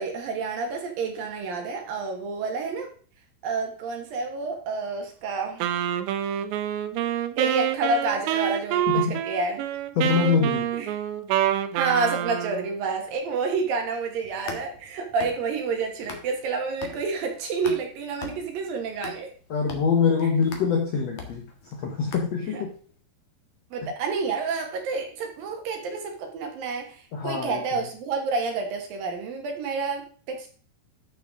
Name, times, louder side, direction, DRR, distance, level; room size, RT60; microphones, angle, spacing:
voice 1, 0.0-2.9 3.4-5.7 7.4-9.6 10.8-10.9 11.7-19.3 22.5-22.6 23.7-30.5, right 4 dB, 65° right, 3 dB, 2.9 m, -29 dB
Wind instrument woodwind instrument, 5.6-12.7, right 11 dB, 90° right, 3.0 m, -27 dB
voice 2, 8.9-9.2 10.0-10.7 19.5-22.7 23.8-23.9 27.1-27.6, left 6 dB, 80° left, 2 dB, 1.4 m, -24 dB
sound 1, 14.2-16.5 16.8-22.7, left 5 dB, 60° left, 1.8 m, -42 dB
12.0 x 5.7 x 3.6 m, 0.43 s
omnidirectional pair, 4.9 m